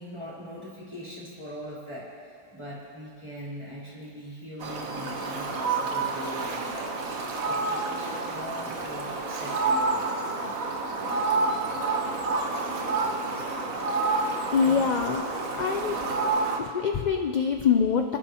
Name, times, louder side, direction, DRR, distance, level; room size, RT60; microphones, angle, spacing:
voice 1, 0.0-7.0 7.4-10.1 14.6-14.8, equal, 20° right, -9 dB, 3.9 m, -41 dB
Fowl, 4.6-16.6, right 3 dB, 90° right, 1.6 m, -29 dB
voice 2, 14.5-16.0 16.6-18.2, left 6 dB, 50° left, 4 dB, 0.5 m, -25 dB
26.0 x 11.0 x 3.0 m, 2.2 s
omnidirectional pair, 1.4 m